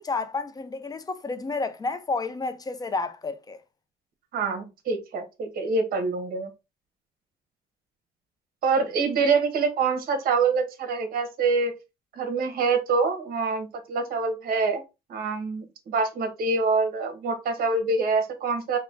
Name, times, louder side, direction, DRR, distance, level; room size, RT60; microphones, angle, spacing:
voice 1, 0.0-3.6, left 3 dB, 20° left, 0.6 m, -30 dB
voice 2, 4.3-6.5 8.6-11.7 12.2-14.8 15.1-18.8, right 4 dB, 60° right, 1.3 m, -25 dB
4.6 x 2.2 x 3.8 m
cardioid pair, 110°, 17 cm